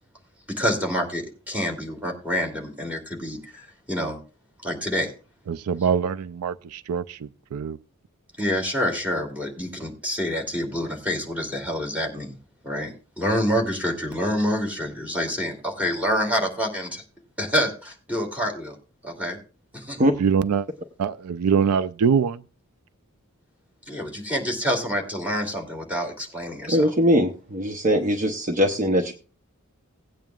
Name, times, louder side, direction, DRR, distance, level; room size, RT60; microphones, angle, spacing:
voice 1, 0.5-4.2 4.6-5.1 8.4-12.4 12.6-12.9 13.2-17.0 17.4-18.8 19.0-19.4 19.7-20.0 23.9-26.9, equal, 5° right, 2.6 m, -27 dB
voice 2, 5.5-7.2 7.5-7.8 20.2-20.7 21.0-22.4, right 6 dB, 85° right, 0.4 m, -23 dB
voice 3, 26.6-29.1, equal, 35° right, 0.8 m, -21 dB
18.0 x 9.0 x 2.3 m
head